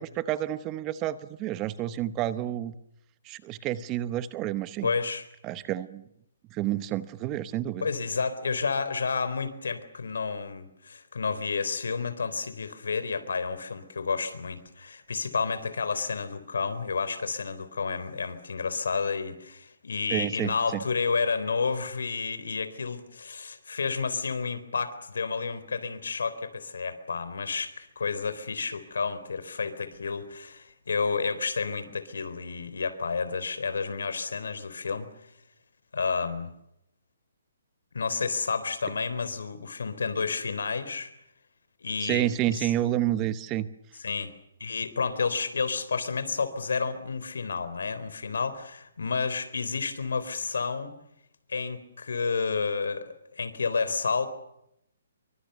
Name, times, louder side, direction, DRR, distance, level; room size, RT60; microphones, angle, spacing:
voice 1, 0.0-2.7 3.2-4.9 5.4-6.0 6.5-7.9 20.1-20.8 42.0-43.7, right 13 dB, 20° right, 15 dB, 0.9 m, -29 dB
voice 2, 4.8-5.3 7.8-35.1 35.9-36.5 37.9-41.1 41.8-42.3 42.5-42.7 44.0-44.3 44.6-50.9 51.5-54.3, left 5 dB, 85° left, 13 dB, 3.8 m, -30 dB
27.0 x 24.0 x 6.9 m, 0.79 s
hypercardioid pair, 165°, 0 cm